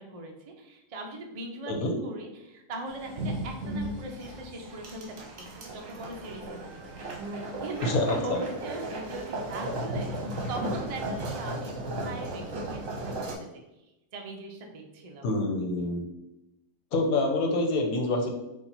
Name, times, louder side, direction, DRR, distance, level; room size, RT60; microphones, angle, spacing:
voice 1, 0.0-6.9 7.6-13.6 14.1-15.3, right 2 dB, 40° right, 1 dB, 0.5 m, -40 dB
sound 1, 2.9-13.3, right 1 dB, 60° right, 1.3 m, -35 dB
voice 2, 7.8-8.4 15.2-16.0 16.9-18.3, left 2 dB, 70° left, 2 dB, 1.2 m, -26 dB
4.4 x 2.8 x 4.0 m, 0.94 s
omnidirectional pair, 1.6 m